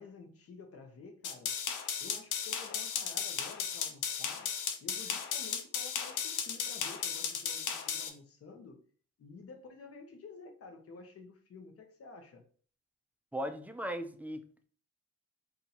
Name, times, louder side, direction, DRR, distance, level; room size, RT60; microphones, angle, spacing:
voice 1, 0.0-1.5 2.0-4.5 4.8-8.8 9.2-12.4, left 4 dB, 50° left, 5 dB, 1.0 m, -51 dB
sound 1, 1.2-8.1, left 7 dB, 85° left, 0.6 m, -35 dB
voice 2, 13.3-14.7, equal, 5° right, 7 dB, 0.4 m, -38 dB
2.7 x 2.6 x 4.3 m, 0.43 s
cardioid pair, 90°, 30 cm